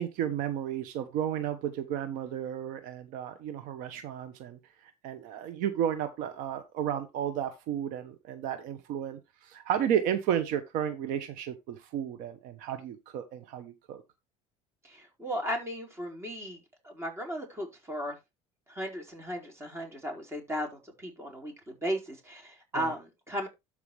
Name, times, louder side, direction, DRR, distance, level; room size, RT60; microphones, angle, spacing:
voice 1, 0.0-4.6 5.0-14.0 22.7-22.9, right 9 dB, 70° right, 9 dB, 1.1 m, -33 dB
voice 2, 14.8-18.2 18.7-23.5, equal, 20° right, 1 dB, 4.4 m, -36 dB
12.5 x 5.0 x 3.3 m, 0.22 s
cardioid pair, 120°, 14 cm